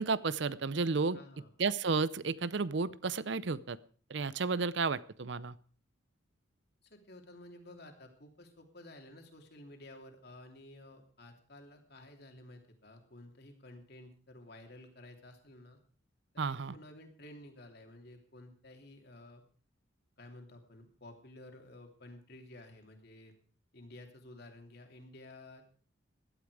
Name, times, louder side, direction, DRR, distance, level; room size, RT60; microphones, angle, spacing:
voice 1, 0.0-1.2 1.6-3.8 4.1-5.5 16.4-16.7, right 4 dB, 60° right, 18 dB, 0.6 m, -32 dB
voice 2, 1.1-1.5 6.8-15.8 16.3-19.4 20.2-23.3 23.7-25.6, left 1 dB, 55° left, 4 dB, 2.9 m, -53 dB
16.5 x 12.0 x 4.9 m, 0.43 s
head